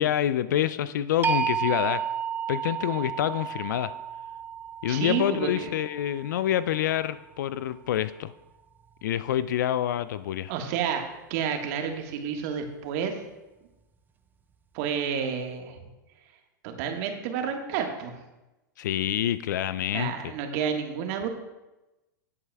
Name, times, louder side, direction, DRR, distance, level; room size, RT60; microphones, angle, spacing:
voice 1, 0.0-2.0 2.5-3.9 4.8-8.3 9.0-10.5 18.8-20.3, left 11 dB, 65° left, 15 dB, 0.4 m, -27 dB
sound 1, 1.2-7.2, right 8 dB, 15° right, 0.6 m, -32 dB
voice 2, 4.9-5.7 10.5-11.0 11.3-13.2 14.7-15.8 16.6-18.1 19.9-21.3, right 7 dB, 50° right, 4 dB, 1.5 m, -30 dB
18.0 x 8.3 x 2.3 m, 1.0 s
hypercardioid pair, 100°, 11 cm